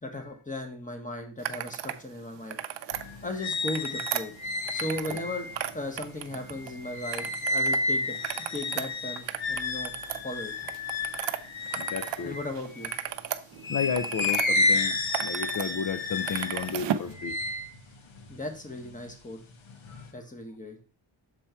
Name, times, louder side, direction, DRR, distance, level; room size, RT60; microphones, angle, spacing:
voice 1, 0.0-2.6 3.2-4.3 4.7-5.5 5.7-8.2 8.5-9.9 10.2-10.5 12.2-12.9 18.3-19.4 20.1-20.8, left 1 dB, 15° left, 4 dB, 1.3 m, -36 dB
sound 1, 1.4-2.0 2.4-3.0 3.5-5.3 5.5-6.7 7.1-7.8 8.1-12.2 12.5-14.5 14.9-15.7 15.9-17.1, right 10 dB, 65° right, 0.6 m, -34 dB
sound 2, 2.9-13.1 13.6-19.1 19.5-20.1, left 2 dB, 80° left, 1.1 m, -31 dB
voice 2, 11.7-12.3 13.7-17.4, left 7 dB, 40° left, 9 dB, 0.5 m, -32 dB
6.7 x 4.4 x 4.4 m, 0.38 s
wide cardioid pair, 140°, 47 cm